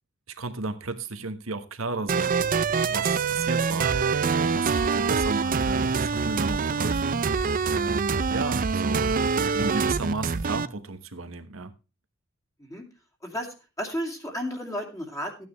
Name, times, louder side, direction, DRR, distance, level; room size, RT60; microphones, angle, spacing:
voice 1, 0.3-2.4 2.9-4.0 4.4-7.3 7.7-9.2 9.5-11.7, right 3 dB, 85° right, 1.3 m, -34 dB
sound 1, 2.1-10.7, right 5 dB, 45° right, 0.5 m, -25 dB
voice 2, 13.2-15.5, equal, 15° left, 2.5 m, -33 dB
14.5 x 9.3 x 3.2 m
head